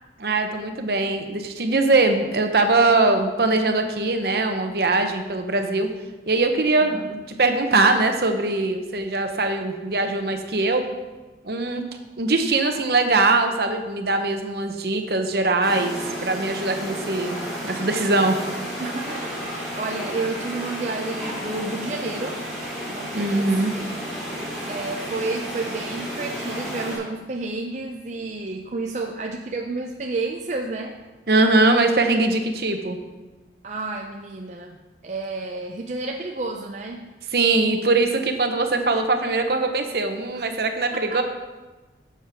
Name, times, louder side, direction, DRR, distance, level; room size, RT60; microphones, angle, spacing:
voice 1, 0.2-5.9 6.3-10.8 11.4-11.8 12.2-17.4 17.6-18.4 23.1-23.7 31.3-33.0 37.3-41.2, right 3 dB, 60° right, 6 dB, 0.9 m, -21 dB
sound 1, 15.6-27.0, equal, ahead, 3.0 m, -32 dB
voice 2, 18.8-22.5 22.9-23.6 24.7-31.0 33.6-37.1 40.3-40.5 40.9-41.2, right 3 dB, 40° right, 2 dB, 0.4 m, -31 dB
10.5 x 7.2 x 3.5 m, 1.2 s
head